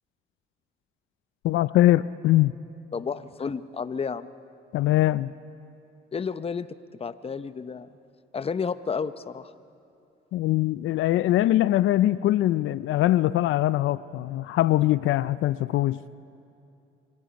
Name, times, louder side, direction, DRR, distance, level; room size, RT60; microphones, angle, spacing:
voice 1, 1.4-2.5 4.7-5.3 10.3-16.2, left 15 dB, 80° left, 17 dB, 0.4 m, -22 dB
voice 2, 2.9-4.3 6.1-6.7 7.0-7.9 8.3-9.5, left 5 dB, 30° left, 14 dB, 0.7 m, -31 dB
26.0 x 25.0 x 5.2 m, 2.7 s
cardioid pair, 90°, 20 cm